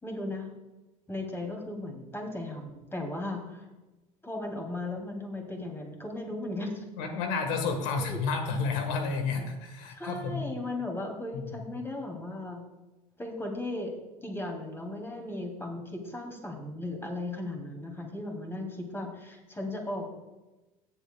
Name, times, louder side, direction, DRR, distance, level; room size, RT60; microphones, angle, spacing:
voice 1, 0.0-0.5 1.1-3.7 4.2-6.8 8.0-8.2 9.9-12.6 13.2-13.9 14.2-20.1, left 2 dB, 10° left, 1 dB, 2.9 m, -36 dB
voice 2, 7.0-10.5 11.3-11.7, left 4 dB, 65° left, 6 dB, 1.5 m, -31 dB
17.5 x 7.3 x 2.3 m, 1.1 s
hypercardioid pair, 75°, 19 cm